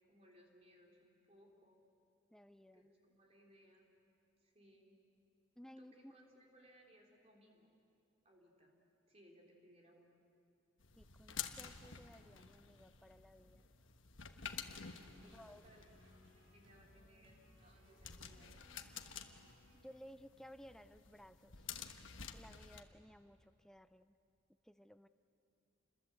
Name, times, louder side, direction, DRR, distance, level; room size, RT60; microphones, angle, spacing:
voice 1, 0.1-1.8 2.7-3.9 4.4-5.0 5.8-7.7 8.2-8.8 9.1-10.2 15.1-15.9 16.4-18.6, equal, 30° right, 0 dB, 3.8 m, -66 dB
voice 2, 2.3-2.9 5.6-6.1 11.0-13.7 15.2-15.6 19.7-21.7 22.3-24.2 24.6-25.1, equal, 5° left, 11 dB, 0.6 m, -58 dB
sound 1, 10.8-22.8, left 8 dB, 75° left, 1.3 m, -51 dB
sound 2, 14.4-19.8, left 1 dB, 70° right, 7.4 m, -67 dB
29.0 x 21.5 x 7.9 m, 2.5 s
head